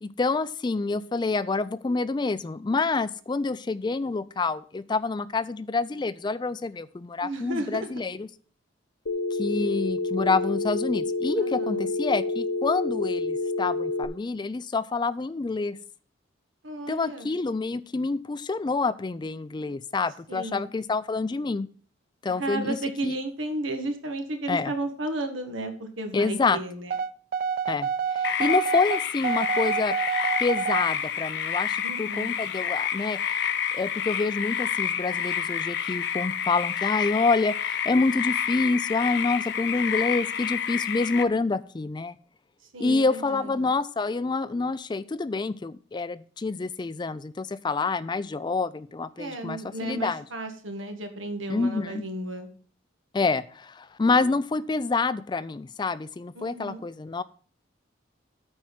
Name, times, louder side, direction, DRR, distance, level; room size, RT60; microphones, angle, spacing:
voice 1, 0.0-8.3 9.4-15.8 16.9-21.7 22.2-22.8 23.0-23.1 24.5-24.7 26.1-26.6 27.7-29.9 30.4-33.2 33.7-42.1 42.8-50.2 51.5-52.0 53.1-57.2, left 3 dB, 25° left, 16 dB, 0.3 m, -27 dB
voice 2, 7.2-8.1 11.4-11.9 16.6-17.3 20.3-20.6 22.4-26.9 31.8-32.4 42.7-43.5 49.2-52.5 56.4-56.8, right 1 dB, 90° right, 6 dB, 1.7 m, -33 dB
Telephone, 9.1-14.1, left 3 dB, 80° left, 1.2 m, -28 dB
sound 1, 26.9-30.9, right 6 dB, 45° right, 0.4 m, -28 dB
sound 2, 28.2-41.2, left 8 dB, 60° left, 0.7 m, -29 dB
9.1 x 4.4 x 7.3 m, 0.44 s
head